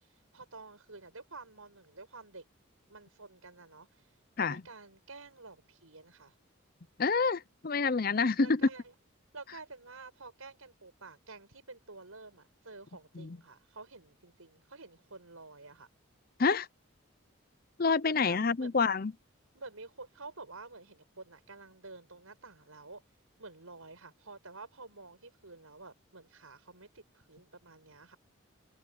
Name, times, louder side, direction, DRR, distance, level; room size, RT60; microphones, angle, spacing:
voice 1, 0.0-2.4 2.9-4.1 4.4-6.3 8.4-8.9 9.3-15.9 18.0-18.8 19.5-23.0 23.4-28.2, right 3 dB, 90° right, 6.8 m, -50 dB
voice 2, 7.0-8.6 13.2-13.4 16.4-16.7 17.8-19.1, left 4 dB, 45° left, 0.6 m, -28 dB
open air
head